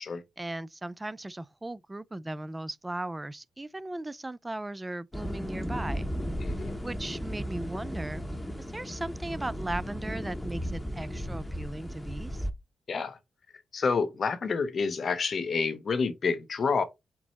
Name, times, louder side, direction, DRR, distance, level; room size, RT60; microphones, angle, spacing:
voice 1, 0.4-6.1 6.8-8.2 8.6-12.5, right 1 dB, 20° right, 0.3 m, -37 dB
sound 1, 5.1-12.5, equal, 15° left, 0.8 m, -35 dB
voice 2, 6.4-6.7 12.9-13.2 13.7-16.8, left 5 dB, 60° left, 0.6 m, -28 dB
4.5 x 2.0 x 4.0 m
supercardioid pair, 45°, 0 cm